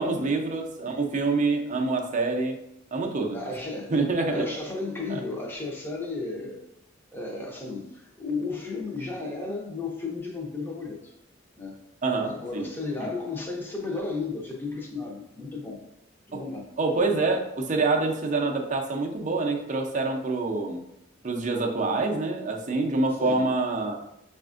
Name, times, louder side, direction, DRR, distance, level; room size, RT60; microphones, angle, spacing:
voice 1, 0.0-2.6 2.9-3.4 3.9-4.4 5.1-5.2 12.0-12.7 13.0-13.1 16.3-16.4 16.8-20.8 21.2-24.0, right 3 dB, 35° right, 2 dB, 0.5 m, -26 dB
voice 2, 3.3-3.9 4.2-6.6 7.1-11.1 11.6-11.8 12.2-15.8 16.3-16.7 23.2-23.5, left 3 dB, 10° left, -1 dB, 0.7 m, -34 dB
5.8 x 2.4 x 2.4 m, 0.80 s
head